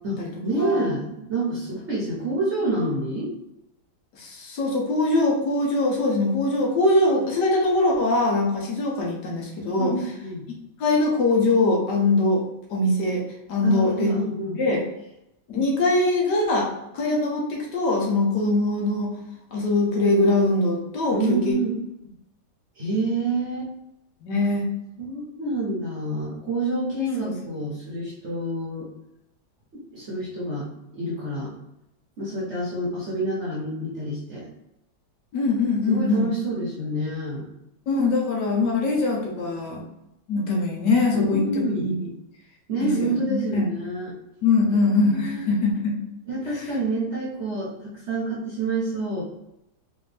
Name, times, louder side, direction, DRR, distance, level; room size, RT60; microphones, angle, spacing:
voice 1, 0.0-3.3 9.8-10.5 13.6-14.6 21.1-21.8 22.8-23.7 25.0-28.9 29.7-30.7 30.9-31.5 32.2-34.5 35.9-37.5 41.1-41.9 42.7-44.1 44.7-45.4 46.3-49.2, right 2 dB, 45° right, -5 dB, 1.0 m, -28 dB
voice 2, 0.6-0.9 4.1-9.9 10.8-12.4 12.7-13.2 13.5-14.1 14.5-14.8 15.5-19.1 19.5-21.5 24.2-24.7 27.2-27.3 35.3-36.2 37.9-39.8 40.3-41.5 41.7-42.1 43.0-43.7 44.4-46.0, left 2 dB, 65° left, -1 dB, 1.4 m, -22 dB
4.4 x 2.6 x 3.3 m, 0.87 s
omnidirectional pair, 2.1 m